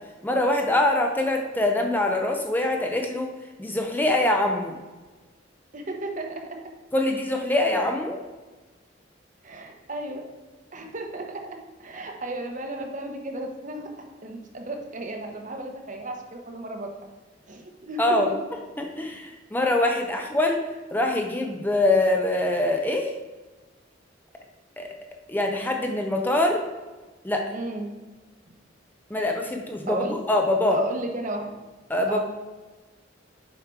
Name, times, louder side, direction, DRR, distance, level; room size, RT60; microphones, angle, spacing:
voice 1, 0.2-3.3 3.6-4.7 6.9-8.2 18.0-18.3 18.8-20.6 20.9-23.1 24.8-24.9 25.3-26.6 27.2-27.5 29.1-30.8 31.9-32.2, left 1 dB, 10° left, 2 dB, 0.6 m, -24 dB
voice 2, 5.7-6.4 9.4-10.2 10.7-11.4 11.8-13.9 14.2-16.9 17.5-18.3 20.1-20.2 27.5-27.9 29.9-30.2 30.7-31.5 32.1-32.2, right 2 dB, 40° right, 3 dB, 1.0 m, -33 dB
7.3 x 5.0 x 4.6 m, 1.3 s
head